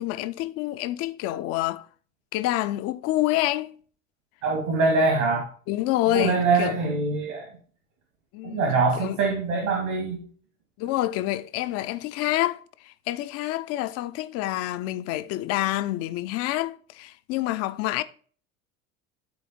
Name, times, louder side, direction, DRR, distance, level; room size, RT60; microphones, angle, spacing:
voice 1, 0.0-1.9 2.3-3.7 5.7-6.8 8.3-8.6 9.0-9.2 10.8-18.0, left 15 dB, 40° left, 0.5 m, -27 dB
voice 2, 4.4-5.5 6.1-7.6 8.4-10.2, right 3 dB, 65° right, 2.6 m, -24 dB
12.5 x 4.2 x 4.3 m
figure-of-eight pair, 70°, 40 cm